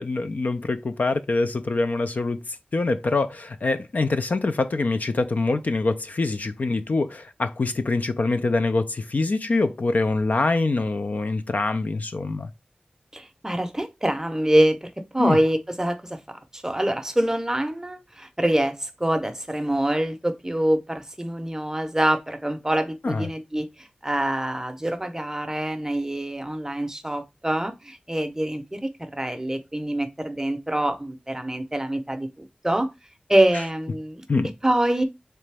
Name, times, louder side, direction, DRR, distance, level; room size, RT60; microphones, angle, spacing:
voice 1, 0.0-2.4 2.7-12.5 15.2-15.4 23.0-23.3 34.3-34.5, left 3 dB, 70° left, 0.4 m, -24 dB
voice 2, 13.1-32.9 33.3-34.2 34.6-35.0, right 1 dB, 20° right, 0.6 m, -25 dB
3.9 x 3.2 x 3.3 m
wide cardioid pair, 75°, 3 cm